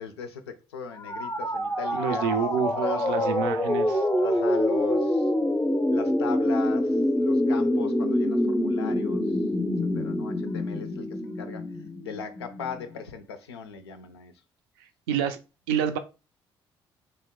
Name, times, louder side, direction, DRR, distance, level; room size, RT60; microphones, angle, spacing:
voice 1, 0.0-3.7 4.2-5.3 5.9-9.4 9.9-11.7 12.0-14.3, left 6 dB, 90° left, 0.4 m, -38 dB
sound 1, 1.0-12.8, left 1 dB, 10° left, 0.5 m, -26 dB
voice 2, 1.9-4.0 15.1-15.4 15.7-16.0, right 7 dB, 75° right, 0.4 m, -27 dB
3.0 x 2.1 x 3.5 m
hypercardioid pair, 50°, 13 cm